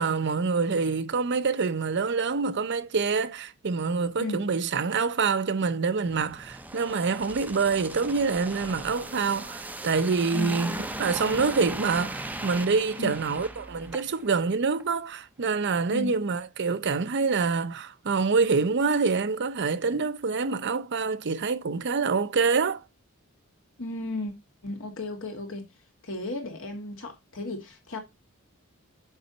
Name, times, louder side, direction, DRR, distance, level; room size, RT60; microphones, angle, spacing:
voice 1, 0.0-22.8, right 4 dB, 55° right, 0.7 m, -26 dB
sound 1, 6.1-14.4 14.7-14.9, right 1 dB, 10° right, 0.7 m, -38 dB
voice 2, 23.8-24.3 24.6-25.6 26.0-28.0, left 2 dB, 65° left, 2.3 m, -34 dB
6.7 x 5.6 x 4.2 m
head